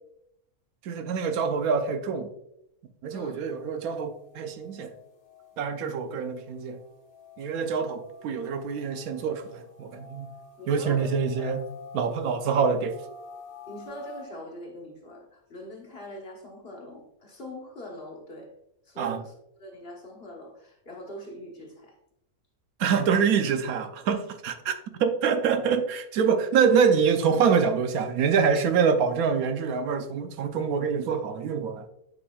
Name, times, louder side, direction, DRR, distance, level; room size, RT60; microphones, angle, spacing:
voice 1, 0.8-2.3 3.0-4.9 5.6-6.8 7.4-10.3 10.7-11.6 11.9-13.0 19.0-19.2 22.8-31.9, right 6 dB, 80° right, 8 dB, 1.1 m, -25 dB
voice 2, 3.1-3.4 10.6-11.6 13.7-18.5 18.8-19.3 19.6-22.0, equal, 45° left, -1 dB, 1.2 m, -42 dB
sound 1, 3.4-14.2, left 3 dB, 70° left, 1.5 m, -49 dB
8.5 x 5.0 x 2.3 m, 0.80 s
omnidirectional pair, 1.5 m